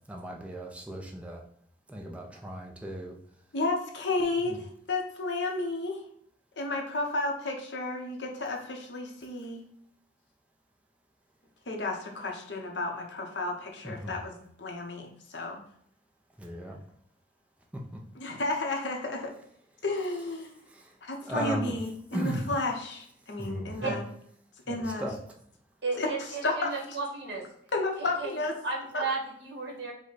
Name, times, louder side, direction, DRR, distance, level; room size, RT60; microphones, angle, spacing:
voice 1, 0.1-1.4 1.9-3.1 4.5-4.6 13.8-14.1 16.4-16.8 17.7-18.0 20.7-20.9 21.2-21.7 22.1-22.5 23.4-24.0 24.7-25.2, equal, 5° right, 0 dB, 0.4 m, -36 dB
voice 2, 3.5-6.0 6.6-9.6 11.7-15.6 18.1-19.3 19.8-20.6 21.0-24.0 24.7-25.1 26.0-26.1 26.4-26.7 27.7-28.5 28.9-29.0, left 2 dB, 80° left, 2 dB, 0.9 m, -32 dB
voice 3, 25.8-27.4 28.0-28.4 28.6-29.9, right 4 dB, 70° right, -2 dB, 1.5 m, -34 dB
5.0 x 2.2 x 4.0 m, 0.66 s
head